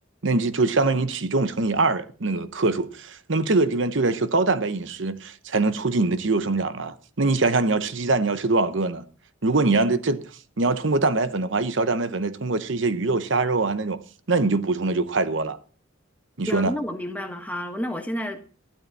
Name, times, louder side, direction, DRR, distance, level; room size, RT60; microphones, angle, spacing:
voice 1, 0.2-9.0 9.4-10.2 10.6-14.0 14.3-15.6 16.4-16.7, right 3 dB, 60° right, 0.9 m, -23 dB
voice 2, 16.5-18.5, equal, 10° left, 1.4 m, -30 dB
13.0 x 12.5 x 4.1 m
head